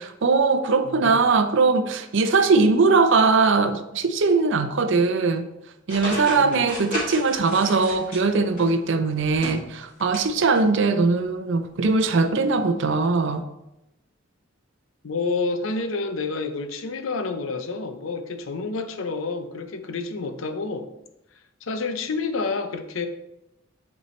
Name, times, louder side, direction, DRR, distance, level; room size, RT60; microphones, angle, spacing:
voice 1, 0.0-5.5 5.9-13.4, right 4 dB, 65° right, 0.6 m, -20 dB
voice 2, 0.8-1.3 6.3-6.7 15.0-20.9 21.6-23.1, left 3 dB, 80° left, 0.7 m, -29 dB
sound 1, 5.9-8.7 9.2-10.3 10.6-10.7 11.8-11.9, left 1 dB, 45° left, 2.3 m, -33 dB
8.4 x 4.5 x 3.2 m
head